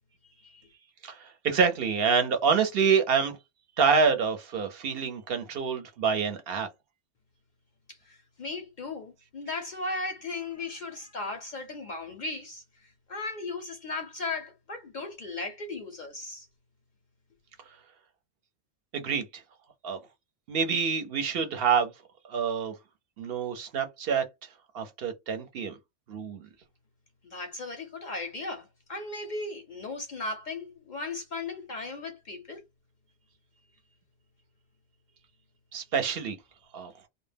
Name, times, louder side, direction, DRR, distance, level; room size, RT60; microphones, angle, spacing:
voice 1, 1.0-3.4 3.8-6.7 18.9-19.4 19.8-20.0 20.5-21.9 22.3-22.7 23.2-24.5 24.7-25.8 26.1-26.5 35.7-36.4 36.7-36.9, right 6 dB, 60° right, 0.8 m, -27 dB
voice 2, 7.9-16.5 27.2-32.6, left 3 dB, 55° left, 0.5 m, -37 dB
2.1 x 2.1 x 3.2 m
omnidirectional pair, 1.2 m